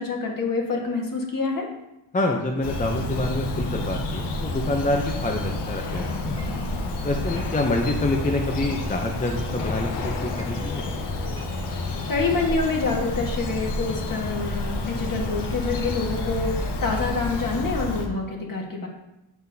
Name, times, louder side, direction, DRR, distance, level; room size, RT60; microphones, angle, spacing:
voice 1, 0.0-1.7 12.1-18.9, left 3 dB, 50° left, 0 dB, 1.6 m, -27 dB
voice 2, 2.1-6.4 7.0-10.8, left 2 dB, 20° left, 1 dB, 0.6 m, -27 dB
Bird vocalization bird call bird song, 2.6-18.1, left 2 dB, 65° left, 1.1 m, -29 dB
sound 1, 5.4-13.4, right 3 dB, 30° right, 1.0 m, -45 dB
8.9 x 6.2 x 2.7 m, 0.91 s
wide cardioid pair, 140°, 44 cm